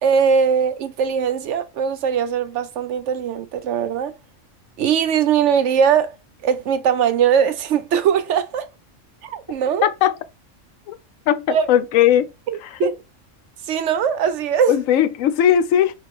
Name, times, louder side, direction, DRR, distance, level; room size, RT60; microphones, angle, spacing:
voice 1, 0.0-4.2 4.8-6.2 6.4-8.7 9.2-9.9 11.5-11.6 12.8-12.9 13.6-14.7, right 7 dB, 70° right, 0.9 m, -20 dB
voice 2, 9.8-10.2 10.9-11.0 11.3-12.3 12.6-12.9 14.7-15.9, left 10 dB, 85° left, 1.0 m, -18 dB
3.8 x 2.5 x 3.4 m
omnidirectional pair, 1.3 m